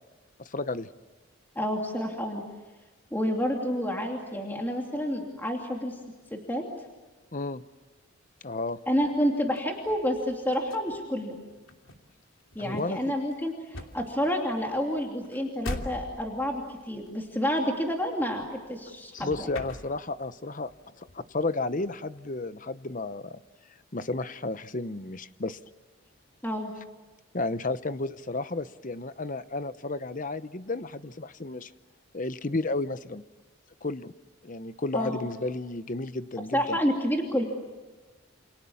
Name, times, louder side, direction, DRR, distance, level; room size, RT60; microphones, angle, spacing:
voice 1, 0.4-0.9 7.3-7.6 8.4-8.8 12.6-13.1 19.1-20.7 21.0-23.4 23.9-25.6 27.3-31.7 32.1-33.2 33.8-34.1 34.4-36.8, left 2 dB, 40° left, 13 dB, 0.8 m, -32 dB
voice 2, 1.5-2.4 3.1-6.0 6.3-6.6 8.9-11.3 12.5-19.5 26.4-26.7 34.9-35.3 36.5-37.4, equal, 10° left, 1 dB, 2.7 m, -29 dB
sound 1, 9.6-18.9 19.1-20.4 20.7-22.2, left 1 dB, 75° left, 2.9 m, -43 dB
29.0 x 28.5 x 7.2 m, 1.2 s
head